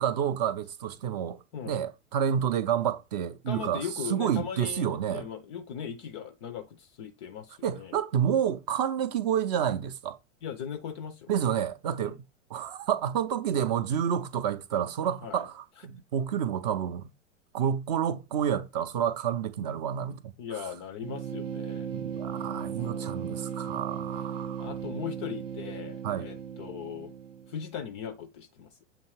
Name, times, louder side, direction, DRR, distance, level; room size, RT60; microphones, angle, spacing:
voice 1, 0.0-5.3 7.6-10.2 11.3-12.2 12.5-17.1 17.5-20.3 21.9-24.7 26.0-26.3, right 9 dB, 35° right, 0.5 m, -29 dB
voice 2, 3.5-8.0 10.4-11.3 12.0-12.2 15.2-15.5 20.4-21.9 22.7-23.6 24.6-27.1 27.5-28.7, left 8 dB, 25° left, 0.4 m, -39 dB
sound 1, 21.0-27.7, right 8 dB, 75° right, 0.6 m, -37 dB
7.5 x 2.9 x 4.4 m
figure-of-eight pair, 100°, 38 cm